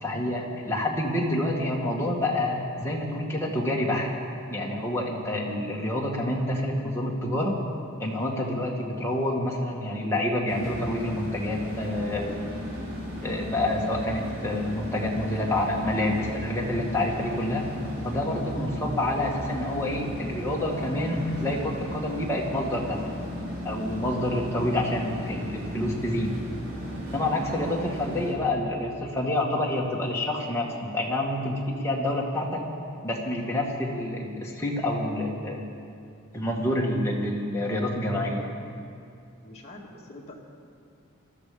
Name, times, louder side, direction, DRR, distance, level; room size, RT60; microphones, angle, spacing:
voice 1, 0.0-4.1 4.5-7.5 8.0-12.5 13.2-17.6 18.0-23.0 23.6-26.3 27.1-32.6 33.0-35.7 36.3-38.5, left 1 dB, 10° left, -3 dB, 1.9 m, -28 dB
sound 1, 10.5-28.3, equal, 70° right, 3.8 m, -36 dB
voice 2, 39.4-40.5, left 1 dB, 30° left, -4 dB, 2.0 m, -45 dB
20.0 x 13.0 x 5.2 m, 2.5 s
head